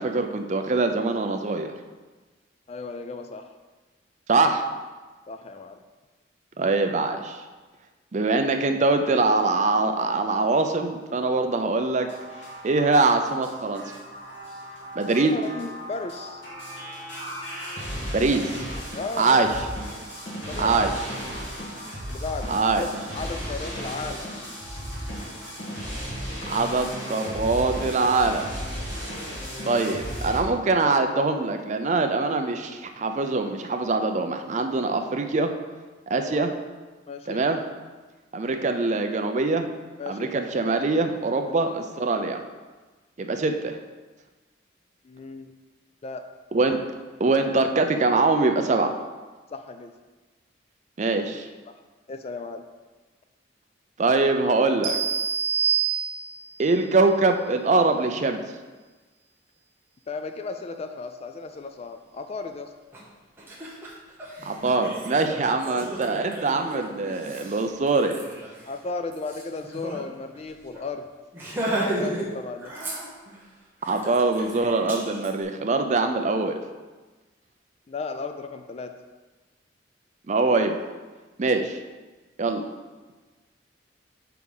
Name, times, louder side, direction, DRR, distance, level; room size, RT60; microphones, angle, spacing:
voice 1, 0.0-1.7 4.3-4.6 6.6-7.4 8.1-12.1 12.6-13.8 15.0-15.3 18.1-18.6 19.2-19.5 20.6-20.9 22.5-22.8 26.5-28.5 29.6-35.5 36.1-36.5 37.3-37.6 38.3-39.7 40.1-42.4 43.2-43.8 46.5-46.8 47.2-48.9 51.0-51.5 54.0-55.0 56.6-58.4 64.4-68.2 73.9-76.6 80.3-80.8 81.4-81.8 82.4-82.6, right 3 dB, 40° right, 6 dB, 0.4 m, -23 dB
voice 2, 2.7-3.5 5.3-5.8 15.1-16.4 18.9-19.5 20.5-21.0 22.1-24.4 36.1-36.5 37.1-37.5 40.0-40.4 41.5-41.8 45.0-45.6 46.0-46.3 49.5-49.9 51.7-51.8 52.1-52.6 60.1-62.7 65.6-65.9 68.6-71.1 71.6-72.8 77.9-79.0, left 3 dB, 35° left, 8 dB, 0.3 m, -35 dB
sound 1, 12.0-30.4, equal, 70° left, 2.1 m, -35 dB
sound 2, 54.8-56.6, right 7 dB, 70° right, 1.1 m, -25 dB
Laughter, 62.9-63.0 63.4-70.0 70.3-70.5 70.7-70.9 71.3-72.3 72.6-73.4 73.8-75.3, right 1 dB, 10° right, 1.0 m, -34 dB
4.9 x 4.5 x 5.4 m, 1.3 s
head